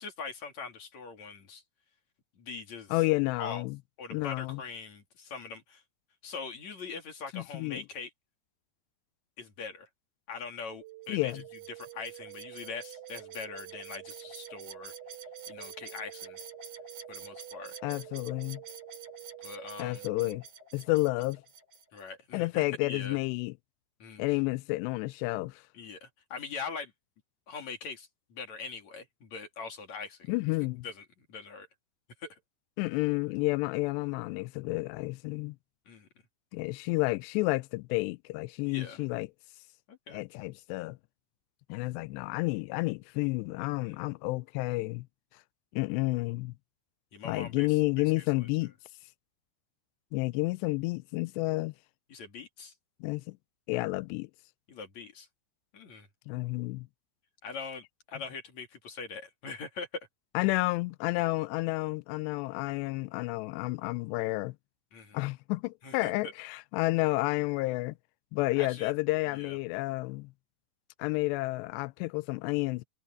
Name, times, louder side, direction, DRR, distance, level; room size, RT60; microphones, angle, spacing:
voice 1, 0.0-1.6 2.4-3.0 3.4-3.6 4.0-5.8 6.2-8.1 9.4-9.9 10.3-11.4 11.7-14.9 15.5-16.4 17.1-17.8 19.4-20.0 21.9-23.2 24.0-24.2 25.7-26.9 27.5-30.3 30.8-31.7 32.2-32.4 35.9-36.1 38.7-39.0 39.9-40.2 43.8-44.0 47.1-48.2 52.1-52.7 54.7-55.3 55.7-56.1 57.4-60.1 64.9-65.2 65.8-66.3 68.5-68.9 69.3-69.6, left 5 dB, 45° left, 3.5 m, -42 dB
voice 2, 2.9-3.8 4.1-4.6 7.3-7.8 11.1-11.4 17.8-18.6 19.8-20.4 20.7-21.4 22.3-23.5 24.2-25.6 30.3-30.9 32.8-35.6 36.5-39.3 40.1-41.0 41.7-45.1 45.7-46.5 47.2-48.7 50.1-51.7 53.0-53.4 53.7-54.3 56.3-56.9 60.3-64.6 65.1-68.0 68.3-70.3 71.0-72.8, left 22 dB, 85° left, 2.7 m, -30 dB
sound 1, 10.8-20.4, right 24 dB, 35° right, 4.3 m, -48 dB
sound 2, 11.0-22.1, right 3 dB, 70° right, 9.9 m, -49 dB
omnidirectional pair, 4.9 m